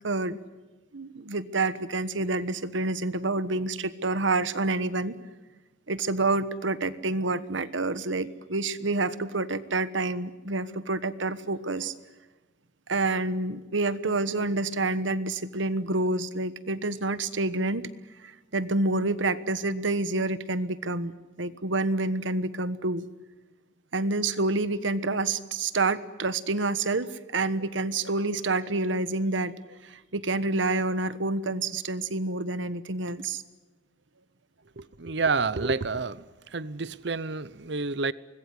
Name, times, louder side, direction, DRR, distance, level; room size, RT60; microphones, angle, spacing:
voice 1, 0.0-0.4 0.9-5.1 5.9-11.9 12.9-17.9 18.2-23.0 23.9-29.5 29.8-33.4, right 2 dB, 75° right, 14 dB, 1.3 m, -28 dB
voice 2, 34.8-36.2 36.5-38.1, right 4 dB, 60° right, 18 dB, 0.8 m, -29 dB
25.0 x 20.5 x 9.8 m, 1.2 s
head